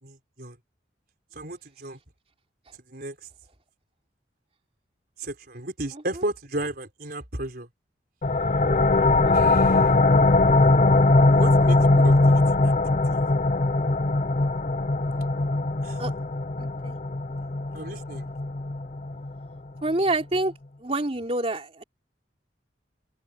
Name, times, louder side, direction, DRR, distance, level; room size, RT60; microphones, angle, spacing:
voice 1, 0.0-0.6 1.3-2.0 2.9-3.2 5.2-7.7 9.3-9.9 11.3-12.8 13.1-13.2 15.8-16.0 17.7-18.3, right 1 dB, 55° right, 4.1 m, -34 dB
sound 1, 8.2-19.6, left 2 dB, 40° left, 0.7 m, -21 dB
voice 2, 9.0-9.4 16.0-16.1 16.6-16.9 19.8-20.5 20.8-21.8, right 2 dB, 35° right, 3.3 m, -27 dB
open air
head